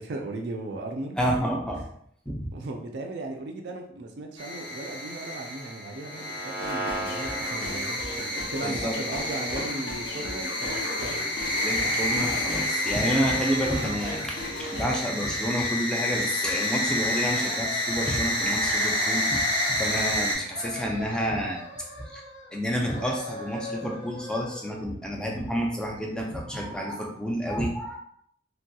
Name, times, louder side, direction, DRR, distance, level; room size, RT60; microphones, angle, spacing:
voice 1, 0.0-1.2 2.5-11.1, right 2 dB, 65° right, 2 dB, 0.4 m, -36 dB
voice 2, 1.2-1.8 2.3-2.5 8.6-8.9 11.6-19.4 19.7-21.6 22.0-22.2 22.5-28.0, equal, 5° left, -1 dB, 0.5 m, -29 dB
sound 1, 4.4-20.4, left 1 dB, 25° left, 0.9 m, -29 dB
sound 2, 6.6-15.0, left 1 dB, 85° left, 0.7 m, -36 dB
sound 3, 17.2-18.3 18.7-20.1 20.4-22.5 22.8-24.8, left 2 dB, 65° left, 1.0 m, -40 dB
3.1 x 2.8 x 2.2 m, 0.68 s
head